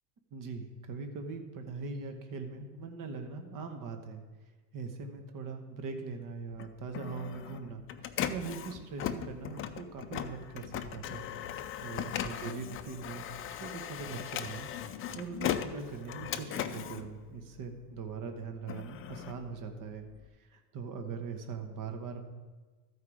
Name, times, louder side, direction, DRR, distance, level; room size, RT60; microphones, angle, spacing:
voice 1, 0.3-4.2 4.7-7.8 8.3-11.2 11.8-13.2 13.5-14.7 15.1-20.0 20.4-22.2, right 4 dB, 40° right, 5 dB, 1.3 m, -41 dB
Printer, 6.5-18.0 18.4-20.3, left 10 dB, 30° left, 0.4 m, -38 dB
13.5 x 4.8 x 4.9 m, 1.3 s
supercardioid pair, 115°, 49 cm